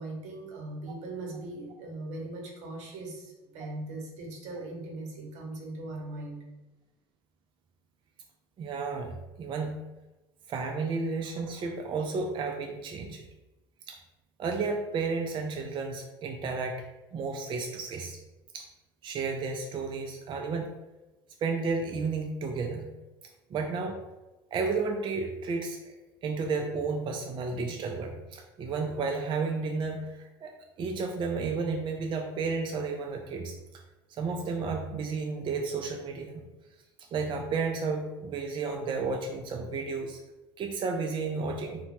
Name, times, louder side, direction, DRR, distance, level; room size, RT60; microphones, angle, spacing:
voice 1, 0.0-6.4, right 2 dB, 65° right, 0 dB, 0.8 m, -39 dB
voice 2, 8.6-9.8 10.5-13.2 13.9-14.0 14.4-16.9 17.1-18.2 18.5-18.7 19.0-20.7 21.4-22.9 23.5-24.0 24.5-25.9 26.2-30.5 30.8-33.6 34.2-36.4 37.1-40.2 40.6-41.8, right 4 dB, 40° right, 3 dB, 0.4 m, -32 dB
2.8 x 2.2 x 2.9 m, 1.0 s
hypercardioid pair, 80°, 13 cm